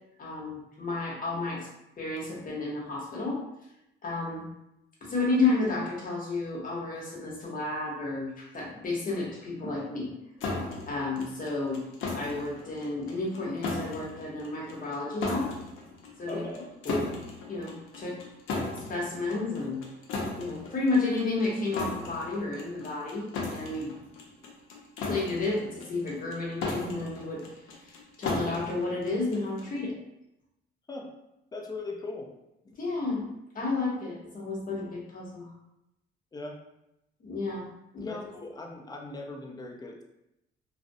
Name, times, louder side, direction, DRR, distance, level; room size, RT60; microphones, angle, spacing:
voice 1, 0.2-1.7 2.0-3.4 4.0-4.5 5.0-10.1 10.9-11.8 12.1-15.5 16.2-17.1 17.5-18.2 18.8-19.8 20.4-23.9 25.0-27.4 27.8-29.9 32.7-33.2 33.5-35.5 37.2-37.7, left 3 dB, 45° left, -3 dB, 0.8 m, -31 dB
sound 1, 10.4-29.8, left 3 dB, 90° left, 0.5 m, -37 dB
voice 2, 31.5-32.3 32.6-32.7 36.3-36.6 38.0-40.0, left 3 dB, 20° left, 1 dB, 0.4 m, -39 dB
2.4 x 2.0 x 2.5 m, 0.87 s
cardioid pair, 90°, 20 cm